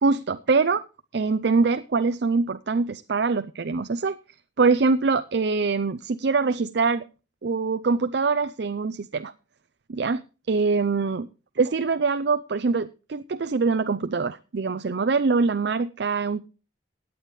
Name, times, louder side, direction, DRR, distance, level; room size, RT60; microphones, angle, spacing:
voice 1, 0.0-0.8 1.1-4.2 4.6-7.1 7.4-9.3 9.9-10.2 10.5-11.2 11.6-16.5, right 4 dB, 65° right, 11 dB, 0.5 m, -24 dB
17.0 x 9.3 x 3.2 m, 0.32 s
head